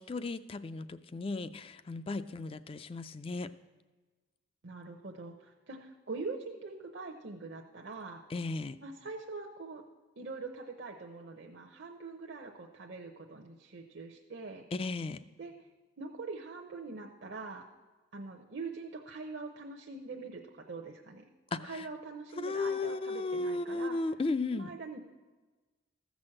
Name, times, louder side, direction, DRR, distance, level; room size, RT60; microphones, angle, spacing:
voice 1, 0.0-3.5 8.3-8.8 14.7-15.2 21.5-21.9 22.4-24.7, left 3 dB, 30° left, 14 dB, 0.3 m, -35 dB
voice 2, 4.6-8.2 8.8-9.8 10.2-14.7 15.4-15.5 16.0-17.7 18.1-24.0 24.5-25.0, right 3 dB, 60° right, 1 dB, 0.7 m, -43 dB
14.0 x 6.2 x 7.6 m, 1.3 s
head